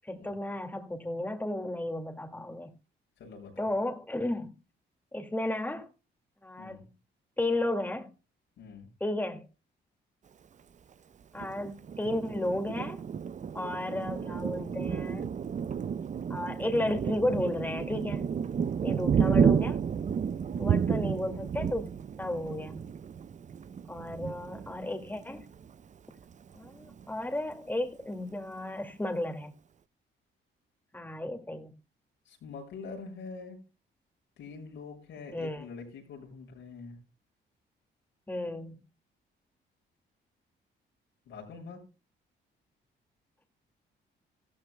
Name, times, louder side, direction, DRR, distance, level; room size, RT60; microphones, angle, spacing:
voice 1, 0.1-2.7 3.6-4.5 5.1-5.9 6.4-6.9 7.4-8.1 9.0-9.5 11.3-13.0 13.5-15.3 16.3-18.3 18.8-19.8 20.6-21.9 22.2-22.8 23.9-25.5 26.5-29.5 30.9-31.7 35.3-35.7 38.3-38.8, left 1 dB, 10° left, 2.1 m, -33 dB
voice 2, 3.2-3.7 6.6-6.8 8.6-8.9 19.3-19.4 32.2-33.6 34.4-37.0 41.3-41.8, left 4 dB, 80° left, 6.7 m, -44 dB
Thunder, 11.4-25.7 26.2-26.3 26.6-27.2, right 7 dB, 40° right, 0.6 m, -31 dB
15.0 x 13.5 x 2.2 m
cardioid pair, 90°, 20 cm